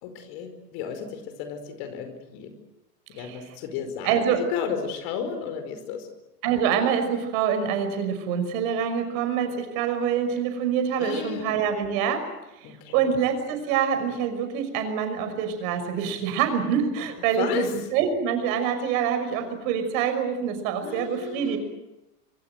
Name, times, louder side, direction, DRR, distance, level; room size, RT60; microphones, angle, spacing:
voice 1, 0.0-2.5 3.1-6.1 11.0-11.5 12.6-13.1 17.4-17.7 20.8-21.6, left 7 dB, 50° left, 8 dB, 5.1 m, -33 dB
voice 2, 4.0-4.4 6.4-12.3 12.6-21.6, right 7 dB, 55° right, 8 dB, 5.9 m, -26 dB
26.0 x 23.5 x 8.0 m, 0.92 s
hypercardioid pair, 90°, 49 cm